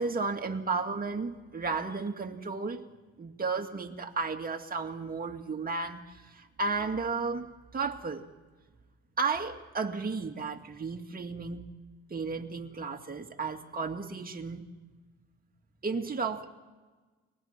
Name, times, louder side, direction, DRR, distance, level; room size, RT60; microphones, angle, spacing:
voice 1, 0.0-2.8 3.2-8.3 9.2-11.7 12.1-14.7 15.8-16.5, right 4 dB, 30° right, 3 dB, 2.0 m, -33 dB
30.0 x 21.0 x 4.4 m, 1.3 s
cardioid pair, 90°, 30 cm